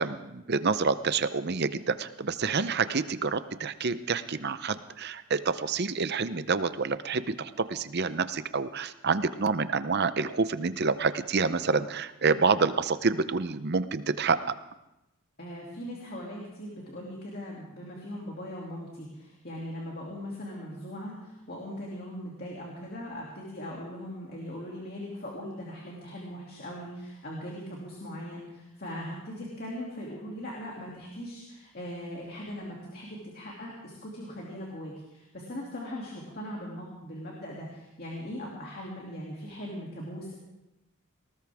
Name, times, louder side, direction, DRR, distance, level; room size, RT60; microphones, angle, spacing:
voice 1, 0.0-14.4, right 4 dB, 45° right, 13 dB, 0.7 m, -28 dB
voice 2, 15.4-40.4, equal, 45° left, -3 dB, 2.6 m, -40 dB
19.5 x 19.0 x 3.6 m, 0.92 s
head